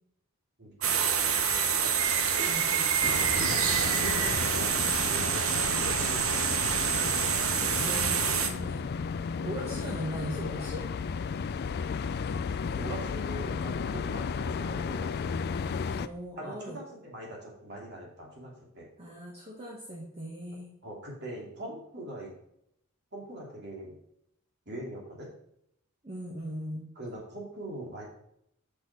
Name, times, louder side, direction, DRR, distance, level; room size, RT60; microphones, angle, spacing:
voice 1, 0.6-1.2 1.9-2.1 3.3-5.3 5.5-6.2 12.8-15.3 16.3-18.8 20.8-22.3 23.1-24.0 24.7-25.3 27.0-28.1, right 1 dB, 50° right, -3 dB, 2.7 m, -42 dB
sound 1, 0.8-8.5, right 7 dB, 80° right, 0.9 m, -27 dB
voice 2, 2.4-2.9 7.6-8.8 9.4-10.8 15.9-16.8 19.0-20.7 26.0-26.9, right 1 dB, 30° right, -4 dB, 1.5 m, -39 dB
sound 2, 3.0-16.1, left 5 dB, 50° left, 0.3 m, -34 dB
6.3 x 5.9 x 4.7 m, 0.74 s
head